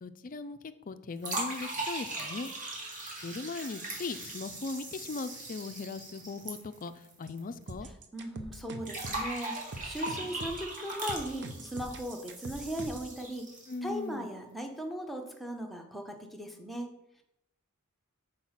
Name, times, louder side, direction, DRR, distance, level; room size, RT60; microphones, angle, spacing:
voice 1, 0.0-2.5 3.2-7.9 13.7-14.3, left 3 dB, 35° left, 11 dB, 0.4 m, -39 dB
sound 1, 1.2-7.4 7.6-7.7 8.9-13.9, right 2 dB, 35° right, 1.8 m, -39 dB
sound 2, 7.7-13.1, right 2 dB, 50° right, 0.7 m, -43 dB
voice 2, 8.1-13.5 13.8-16.9, equal, ahead, 2 dB, 0.8 m, -38 dB
6.2 x 4.7 x 5.7 m, 0.82 s
head